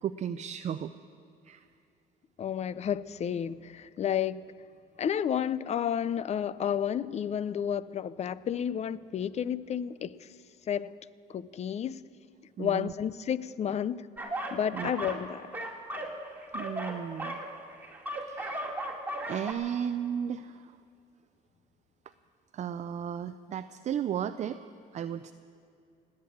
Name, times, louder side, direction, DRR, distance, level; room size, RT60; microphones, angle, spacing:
voice 1, 0.0-0.9 1.4-1.7 12.6-12.9 14.7-15.2 16.5-17.4 18.2-18.8 19.2-20.8 22.5-25.3, right 9 dB, 45° right, 0.5 m, -35 dB
voice 2, 2.4-4.4 5.0-10.3 10.7-10.9 11.3-12.0 12.6-14.1 14.5-15.5, left 9 dB, 40° left, 0.5 m, -31 dB
sound 1, 14.2-15.2 15.5-19.5, right 1 dB, 10° right, 2.2 m, -36 dB
19.0 x 8.9 x 8.6 m
cardioid pair, 110°, 17 cm